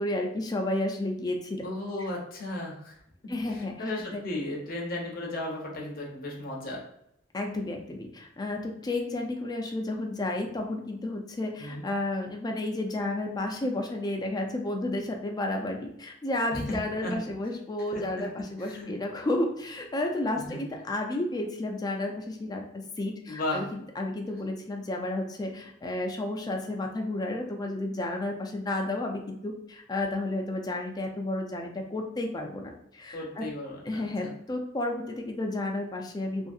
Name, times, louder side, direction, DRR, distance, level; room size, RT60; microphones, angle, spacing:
voice 1, 0.0-1.6 3.3-3.8 4.1-4.2 7.3-33.4 33.8-36.5, left 2 dB, 20° left, 2 dB, 0.4 m, -32 dB
voice 2, 1.6-3.0 3.5-6.8 11.6-11.8 16.5-17.2 17.9-18.0 18.4-18.9 20.3-20.6 23.3-23.6 33.1-34.4, left 1 dB, 50° left, -1 dB, 0.7 m, -35 dB
2.7 x 2.6 x 2.4 m, 0.76 s
head